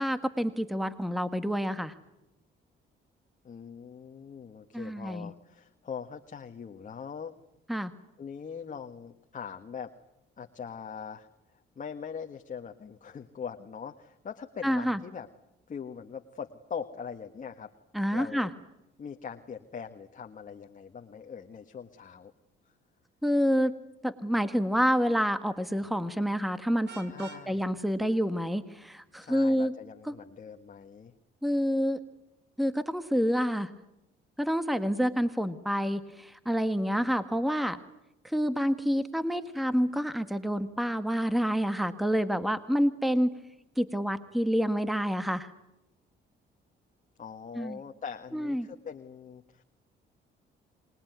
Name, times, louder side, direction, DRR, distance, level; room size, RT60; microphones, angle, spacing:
voice 1, 0.0-1.9 4.7-5.3 7.7-7.9 14.6-15.0 17.9-18.5 23.2-23.7 24.0-29.7 31.4-32.0 32.6-33.7 34.4-37.8 38.2-43.3 43.8-45.5 47.6-47.8 48.3-48.7, equal, ahead, 11 dB, 1.5 m, -28 dB
voice 2, 3.4-7.3 8.2-9.9 10.4-15.3 15.7-17.7 18.1-18.5 19.0-22.3 27.0-27.8 29.2-31.1 37.0-37.1 47.2-49.6, left 6 dB, 40° left, 5 dB, 1.5 m, -42 dB
Vehicle horn car horn honking, 26.8-27.5, right 5 dB, 60° right, 3.7 m, -46 dB
26.5 x 21.0 x 9.3 m, 0.90 s
cardioid pair, 90°, 20 cm